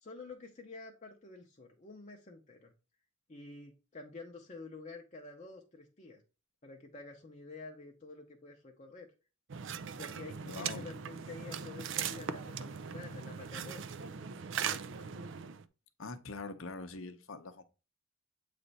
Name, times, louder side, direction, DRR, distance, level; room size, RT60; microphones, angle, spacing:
voice 1, 0.0-2.7 3.3-6.2 6.6-9.1 9.9-13.9 14.6-15.2, left 3 dB, 30° left, 0.7 m, -49 dB
sound 1, 9.5-15.6, right 7 dB, 55° right, 0.4 m, -40 dB
voice 2, 10.4-10.9 16.0-17.6, left 3 dB, 60° left, 0.8 m, -43 dB
8.1 x 3.3 x 4.0 m
head